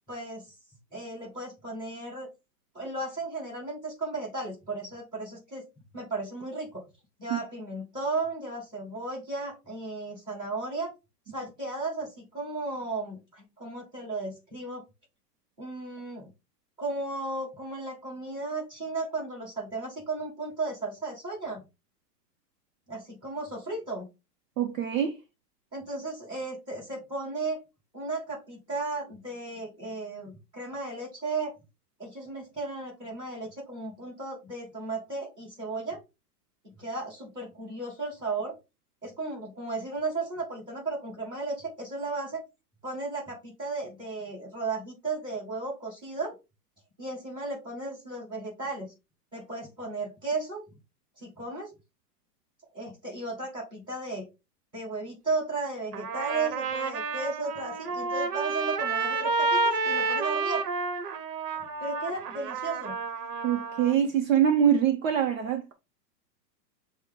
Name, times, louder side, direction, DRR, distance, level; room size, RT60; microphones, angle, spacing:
voice 1, 0.1-0.5 0.9-2.3 2.7-5.6 5.9-6.8 7.2-10.9 11.3-14.8 15.6-16.3 16.8-21.6 22.9-24.1 25.7-27.6 27.9-31.5 32.0-36.0 36.8-38.5 39.0-42.4 42.8-46.4 47.0-48.9 49.3-50.6 51.2-51.7 52.7-54.2 54.7-60.6 61.8-62.9, right 3 dB, 10° right, 1.6 m, -35 dB
voice 2, 24.6-25.2 63.4-65.7, right 9 dB, 55° right, 0.6 m, -24 dB
Trumpet, 55.9-64.0, right 4 dB, 70° right, 0.9 m, -30 dB
6.1 x 2.1 x 3.6 m
supercardioid pair, 175°, 49 cm